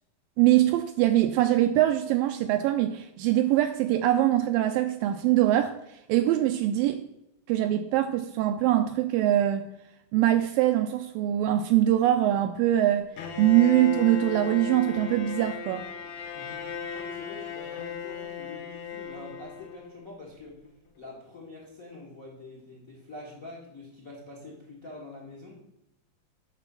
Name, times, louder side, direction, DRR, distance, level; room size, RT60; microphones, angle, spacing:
voice 1, 0.4-5.7 6.1-7.0 7.5-9.7 10.1-13.1 13.4-15.9, right 13 dB, 80° right, 8 dB, 2.0 m, -23 dB
Bowed string instrument, 13.2-20.1, left 7 dB, 85° left, 3.2 m, -36 dB
voice 2, 16.3-20.6 20.9-25.6, left 2 dB, 60° left, -1 dB, 0.8 m, -45 dB
10.0 x 4.0 x 6.9 m, 0.83 s
omnidirectional pair, 4.4 m